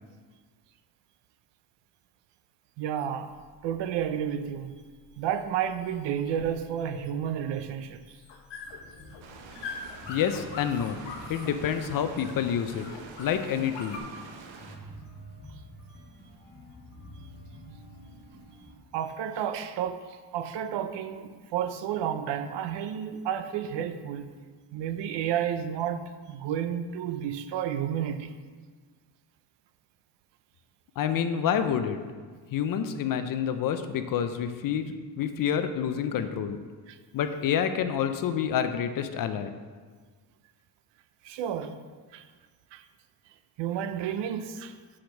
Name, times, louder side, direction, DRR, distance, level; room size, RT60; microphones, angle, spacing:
voice 1, 2.8-3.3 3.6-4.7 5.2-8.2 18.9-24.3 24.7-28.4 36.9-37.0 41.2-41.8 42.1-42.3 42.7-42.8 43.6-44.8, right 9 dB, 70° right, 0.6 m, -31 dB
sound 1, 3.3-14.0, left 4 dB, 70° left, 1.0 m, -44 dB
sound 2, 8.6-18.7, equal, 20° left, 1.5 m, -48 dB
sound 3, 9.2-14.8, right 5 dB, 85° right, 1.0 m, -48 dB
voice 2, 10.1-11.0 11.3-12.9 13.2-14.0 31.0-32.0 32.5-36.6 37.1-39.5, left 8 dB, 50° left, 0.5 m, -28 dB
6.1 x 5.0 x 5.8 m
cardioid pair, 175°, 45 cm